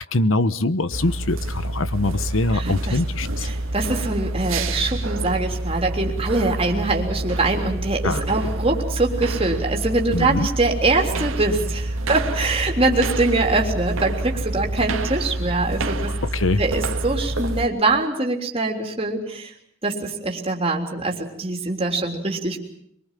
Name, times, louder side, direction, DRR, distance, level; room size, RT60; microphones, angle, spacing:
voice 1, 0.0-3.5 8.0-8.2 10.1-10.5 15.9-16.6, left 2 dB, 70° left, 14 dB, 1.0 m, -23 dB
sound 1, 0.9-17.7, right 1 dB, 75° right, 1.8 m, -27 dB
voice 2, 2.5-2.9 3.4-16.1 16.6-19.5 19.8-22.6, right 2 dB, 25° right, 2 dB, 3.5 m, -23 dB
23.5 x 23.0 x 7.5 m, 0.71 s
head